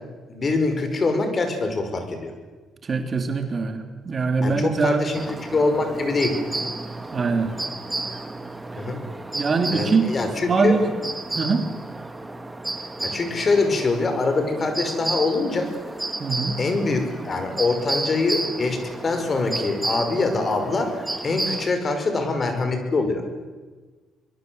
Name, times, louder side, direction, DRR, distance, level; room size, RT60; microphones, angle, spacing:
voice 1, 0.3-2.3 4.4-5.2 5.5-6.4 8.8-9.0 9.7-10.8 13.0-15.7 16.6-23.2, left 3 dB, 35° left, 6 dB, 5.6 m, -24 dB
voice 2, 2.8-5.0 7.1-7.5 8.7-8.8 9.3-10.9 11.3-11.7 16.2-16.6, right 4 dB, 40° right, 6 dB, 2.9 m, -23 dB
sound 1, 5.1-21.7, right 2 dB, 15° right, 2.0 m, -32 dB
24.0 x 22.5 x 7.9 m, 1.3 s
cardioid pair, 90°, 0 cm